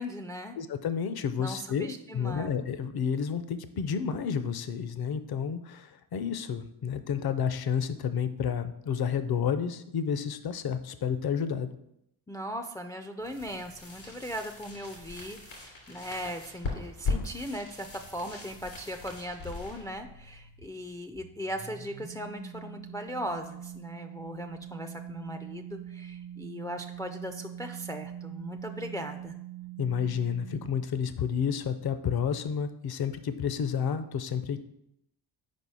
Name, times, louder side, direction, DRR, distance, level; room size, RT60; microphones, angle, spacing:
voice 1, 0.0-0.6 1.4-2.5 12.3-29.3, equal, 10° left, 5 dB, 0.4 m, -38 dB
voice 2, 0.6-11.8 29.8-34.6, left 7 dB, 55° left, 11 dB, 0.6 m, -30 dB
sound 1, 13.2-21.0, left 4 dB, 85° left, 2.6 m, -39 dB
sound 2, 17.6-20.7 21.1-30.7, right 9 dB, 65° right, 1.1 m, -44 dB
4.9 x 4.3 x 4.7 m, 0.78 s
cardioid pair, 60°, 46 cm